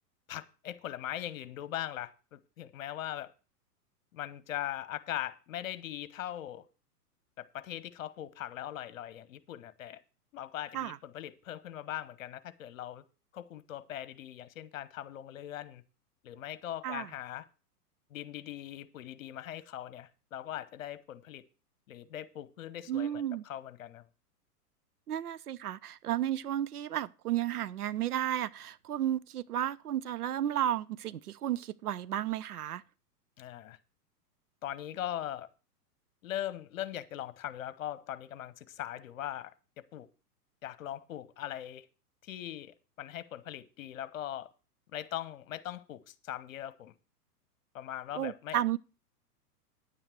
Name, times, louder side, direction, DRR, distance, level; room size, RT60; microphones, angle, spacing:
voice 1, 0.3-3.3 4.1-6.7 7.4-10.0 10.3-13.0 13.3-15.8 16.2-17.5 18.1-21.4 21.9-24.1 33.4-33.8 34.6-35.5 36.2-39.5 39.9-40.1 40.6-41.9 42.2-44.5 44.9-46.9 47.7-48.6, left 12 dB, 55° left, 1.1 m, -40 dB
voice 2, 22.9-23.4 25.1-32.8 48.2-48.8, right 11 dB, 70° right, 0.7 m, -33 dB
9.9 x 9.1 x 4.5 m
figure-of-eight pair, 105°, 47 cm